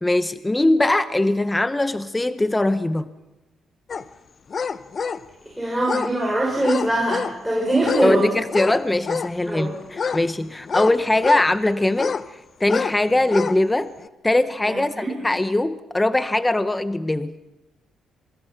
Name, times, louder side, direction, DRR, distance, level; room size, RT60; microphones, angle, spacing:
voice 1, 0.0-3.1 8.0-13.9 14.2-17.4, left 2 dB, 15° left, 12 dB, 0.8 m, -21 dB
sound 1, 3.9-4.0 4.5-5.3 5.8-6.1 6.6-7.4 7.8-8.1 8.5-9.3 9.9-11.5 11.9-12.3 12.6-13.0 13.2-13.6 14.0-14.1, left 5 dB, 45° left, 0.8 m, -27 dB
voice 2, 5.6-8.3 9.5-9.7 14.7-15.1, right 1 dB, 5° right, -3 dB, 6.0 m, -22 dB
27.0 x 24.0 x 5.8 m, 1.1 s
cardioid pair, 90°, 0 cm